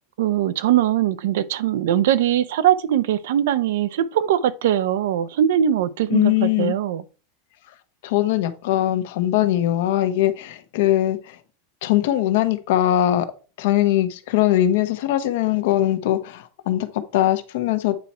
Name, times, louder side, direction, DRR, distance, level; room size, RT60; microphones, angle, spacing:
voice 1, 0.2-7.0, right 11 dB, 75° right, 0.8 m, -21 dB
voice 2, 6.1-6.7 8.0-11.4 11.8-13.3 13.6-18.0, left 13 dB, 65° left, 1.1 m, -21 dB
8.8 x 4.3 x 4.3 m
supercardioid pair, 160°, 0 cm